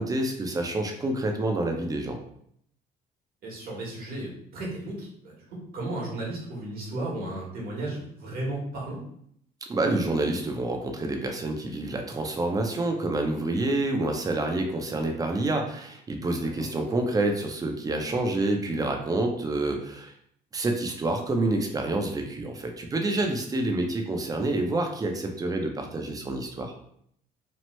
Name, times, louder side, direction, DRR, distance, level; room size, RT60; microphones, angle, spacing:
voice 1, 0.0-2.2 9.7-20.1 20.5-26.7, right 2 dB, 20° right, 3 dB, 0.5 m, -28 dB
voice 2, 3.4-9.0 16.4-16.7, right 1 dB, 60° right, -3 dB, 1.2 m, -34 dB
3.0 x 2.0 x 3.1 m, 0.68 s
cardioid pair, 110°, 17 cm